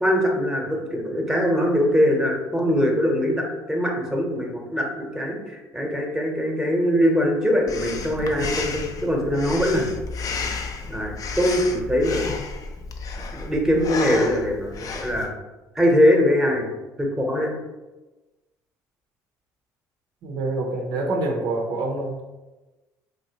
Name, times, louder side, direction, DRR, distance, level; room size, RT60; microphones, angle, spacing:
voice 1, 0.0-9.9 10.9-12.3 13.3-15.3 15.7-16.7 17.0-17.5, equal, 5° right, 0 dB, 0.8 m, -22 dB
Breathing, 7.7-15.3, left 4 dB, 45° left, 0.4 m, -32 dB
voice 2, 20.2-22.2, right 2 dB, 70° right, 1 dB, 0.5 m, -26 dB
3.1 x 2.7 x 2.8 m, 1.1 s
hypercardioid pair, 70°, 9 cm